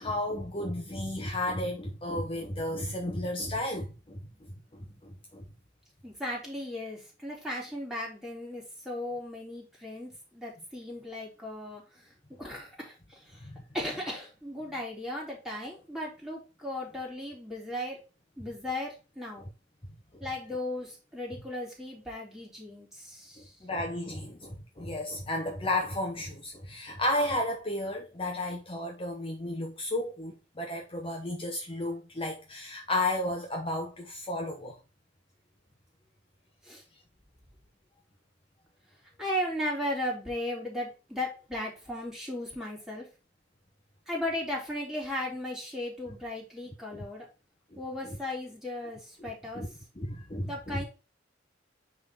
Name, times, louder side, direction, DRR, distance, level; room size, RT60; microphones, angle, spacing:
voice 1, 0.0-5.4 13.4-13.6 23.6-34.8 47.7-47.8 49.5-49.7 50.0-50.8, left 1 dB, 30° left, 1.1 m, -33 dB
voice 2, 6.0-12.1 12.4-13.5 13.7-18.0 18.4-19.5 20.2-23.5 36.6-36.8 39.2-43.0 44.1-47.2 47.8-49.6 50.4-50.8, left 1 dB, ahead, 3.4 m, -36 dB
9.4 x 3.9 x 4.1 m
head